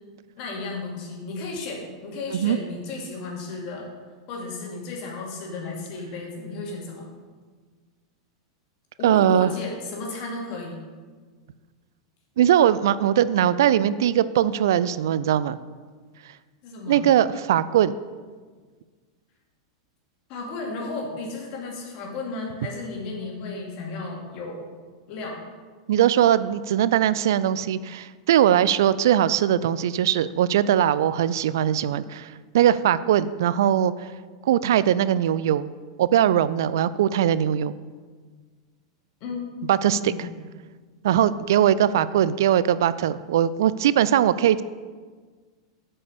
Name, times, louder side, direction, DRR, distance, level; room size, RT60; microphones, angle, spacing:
voice 1, 0.4-3.9 4.3-7.1 9.0-10.8 16.6-17.1 20.3-24.6 25.1-25.5 39.2-40.4, left 3 dB, 45° left, -1 dB, 2.5 m, -34 dB
voice 2, 9.0-9.5 12.4-15.6 16.9-18.0 25.9-34.1 34.5-35.7 36.0-37.8 39.7-40.3 41.0-44.6, right 10 dB, 65° right, 16 dB, 0.3 m, -20 dB
8.2 x 5.5 x 6.8 m, 1.5 s
figure-of-eight pair, 90°, 2 cm